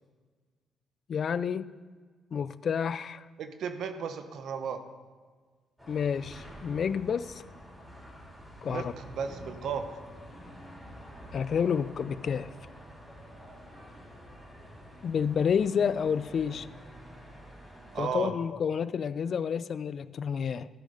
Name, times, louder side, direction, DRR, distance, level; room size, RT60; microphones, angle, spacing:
voice 1, 1.1-1.7 2.3-3.3 5.9-7.4 8.6-8.9 11.3-12.5 15.0-16.7 18.0-20.7, left 7 dB, 55° left, 16 dB, 0.3 m, -29 dB
voice 2, 3.4-4.8 8.6-9.9 17.9-18.3, right 6 dB, 70° right, 8 dB, 0.8 m, -34 dB
sound 1, 5.8-18.0, equal, 5° right, 3.3 m, -48 dB
12.5 x 4.9 x 5.5 m, 1.5 s
cardioid pair, 90°, 0 cm